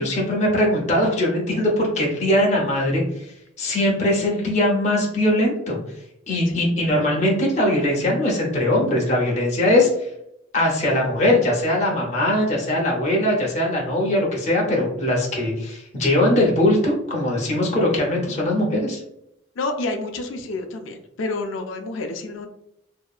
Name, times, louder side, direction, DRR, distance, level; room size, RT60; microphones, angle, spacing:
voice 1, 0.0-5.8 6.3-10.1 10.5-19.0, left 1 dB, 35° left, -2 dB, 0.6 m, -21 dB
voice 2, 19.6-22.5, left 2 dB, 85° left, 5 dB, 0.4 m, -29 dB
2.7 x 2.3 x 2.3 m, 0.79 s
head